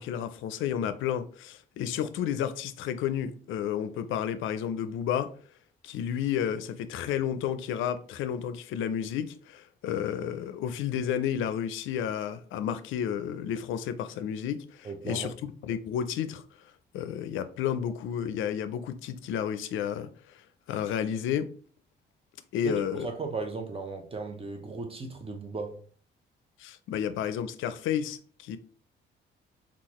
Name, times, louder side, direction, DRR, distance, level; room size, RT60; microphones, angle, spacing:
voice 1, 0.0-5.3 5.8-15.3 15.6-21.5 22.5-23.1 26.6-28.6, left 9 dB, 80° left, 0.4 m, -31 dB
voice 2, 14.8-15.3 22.6-25.8, right 3 dB, 30° right, 0.9 m, -36 dB
3.8 x 2.4 x 3.0 m
cardioid pair, 90°, 20 cm